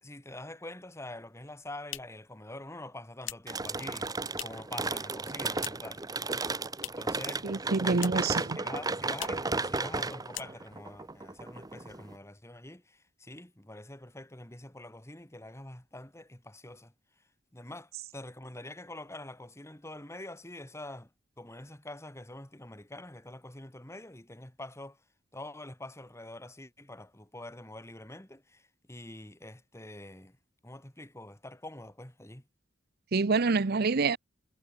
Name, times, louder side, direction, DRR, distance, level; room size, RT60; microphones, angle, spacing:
voice 1, 0.0-6.0 7.0-16.9 17.5-21.1 21.4-25.0 25.3-30.4 30.6-32.5, left 1 dB, 15° left, 2.3 m, -45 dB
sound 1, 1.3-4.8 5.1-6.0 6.3-7.2 7.5-8.4 8.7-8.8 9.1-9.5 9.9-10.0 10.3-10.9, left 14 dB, 80° left, 1.8 m, -43 dB
sound 2, 3.5-12.1, right 3 dB, 20° right, 1.0 m, -34 dB
voice 2, 7.4-8.6 33.1-34.2, right 4 dB, 55° right, 0.7 m, -27 dB
head